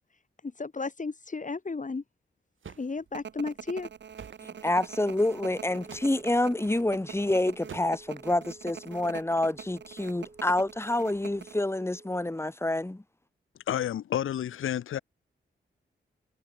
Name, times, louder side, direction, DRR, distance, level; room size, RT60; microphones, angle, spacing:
voice 1, 0.6-2.0 2.8-3.9, left 4 dB, 40° left, 1.8 m, -34 dB
sound 1, 2.6-2.9 4.2-4.4 5.8-6.2 7.7-8.1, right 7 dB, 75° right, 4.4 m, -46 dB
sound 2, 3.1-11.6, right 7 dB, 60° right, 0.8 m, -43 dB
voice 2, 4.4-13.0, left 1 dB, 10° left, 1.4 m, -28 dB
Wind instrument woodwind instrument, 5.2-12.3, right 2 dB, 30° right, 4.3 m, -53 dB
voice 3, 13.7-15.0, left 10 dB, 80° left, 0.6 m, -30 dB
cardioid pair, 50°, 20 cm